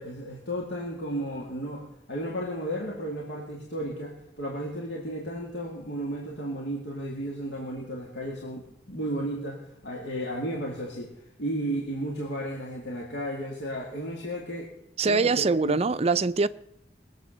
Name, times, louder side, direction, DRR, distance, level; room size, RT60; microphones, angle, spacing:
voice 1, 0.0-11.1 11.4-14.7 15.0-15.8, right 1 dB, 90° left, 2.5 m, -34 dB
voice 2, 15.0-16.5, right 4 dB, 35° right, 0.5 m, -23 dB
20.5 x 8.1 x 6.6 m
head